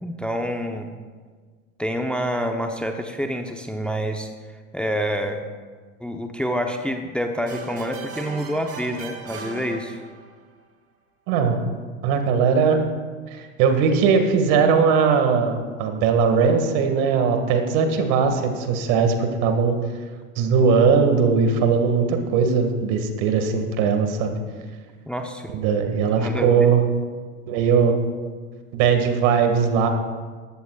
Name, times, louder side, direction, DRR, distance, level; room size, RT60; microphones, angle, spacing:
voice 1, 0.0-0.9 1.8-4.3 4.7-5.4 6.0-10.0 25.1-25.5 26.1-26.7, equal, ahead, 5 dB, 0.9 m, -27 dB
sound 1, 7.5-10.4, right 3 dB, 35° right, 2.2 m, -38 dB
voice 2, 11.3-11.6 12.0-12.8 13.3-19.8 20.4-24.4 25.5-26.8 27.5-28.0 28.7-29.9, right 6 dB, 60° right, 6 dB, 2.1 m, -19 dB
19.5 x 15.0 x 2.5 m, 1.5 s
hypercardioid pair, 85°, 41 cm